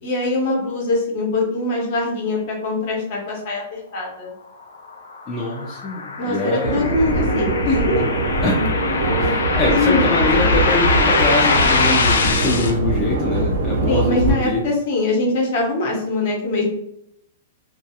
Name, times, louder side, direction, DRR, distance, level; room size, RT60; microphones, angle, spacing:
voice 1, 0.0-4.3 6.2-8.0 9.7-10.1 13.9-16.6, left 2 dB, 45° left, -1 dB, 0.8 m, -22 dB
sound 1, 4.9-12.7, left 4 dB, 90° left, 0.4 m, -22 dB
voice 2, 5.3-6.8 8.4-8.6 9.2-14.6, left 2 dB, 15° left, -4 dB, 0.4 m, -24 dB
sound 2, 6.6-14.3, right 1 dB, 75° right, 0.5 m, -22 dB
2.3 x 2.2 x 2.8 m, 0.78 s
hypercardioid pair, 165°, 0 cm